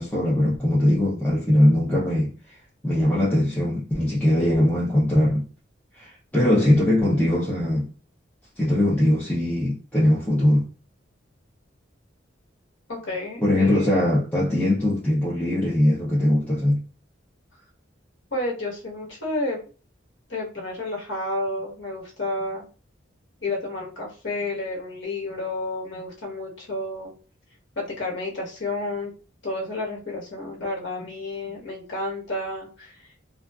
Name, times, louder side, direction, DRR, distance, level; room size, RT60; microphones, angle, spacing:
voice 1, 0.0-2.3 2.8-5.5 6.0-7.9 8.6-10.7 13.4-16.8, left 1 dB, 10° left, 0.5 m, -21 dB
voice 2, 12.9-13.9 18.3-19.6 20.3-22.6 23.4-27.1 27.8-29.1 29.4-33.1, left 2 dB, 75° left, 1.1 m, -31 dB
2.4 x 2.3 x 2.2 m
head